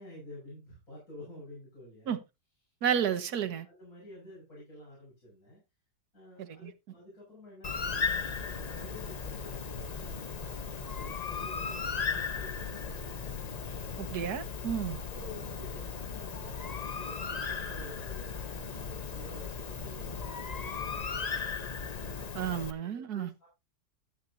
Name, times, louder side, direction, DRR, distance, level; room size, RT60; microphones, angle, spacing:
voice 1, 0.0-2.2 3.4-5.6 6.1-10.4 10.9-13.0 14.5-21.3 22.0-22.3 22.7-23.5, left 1 dB, 60° left, 6.9 m, -50 dB
voice 2, 2.8-3.7 14.0-15.0 22.3-23.3, right 8 dB, 70° right, 1.6 m, -31 dB
Bird, 7.6-22.7, left 5 dB, 40° left, 0.6 m, -36 dB
13.5 x 8.3 x 2.8 m
omnidirectional pair, 1.7 m